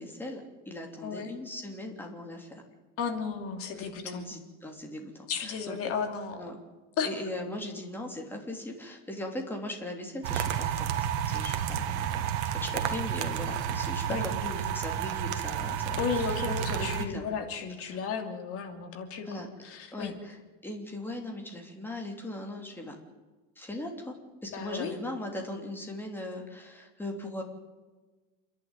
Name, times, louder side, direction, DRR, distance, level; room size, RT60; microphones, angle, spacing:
voice 1, 0.0-2.6 3.8-5.8 6.4-6.6 7.0-10.9 11.3-17.3 17.8-17.9 19.2-19.5 19.9-20.4 20.6-23.0 23.6-24.2 24.4-27.4, left 1 dB, 5° left, 2 dB, 3.2 m, -39 dB
voice 2, 1.0-1.3 3.0-4.3 5.3-6.4 7.0-7.1 12.9-13.0 14.1-14.3 16.0-20.1 24.5-25.0, left 6 dB, 35° left, 5 dB, 2.9 m, -34 dB
sound 1, 10.2-17.1, right 9 dB, 65° right, 2.1 m, -31 dB
28.5 x 11.0 x 9.2 m, 1.3 s
supercardioid pair, 150°, 37 cm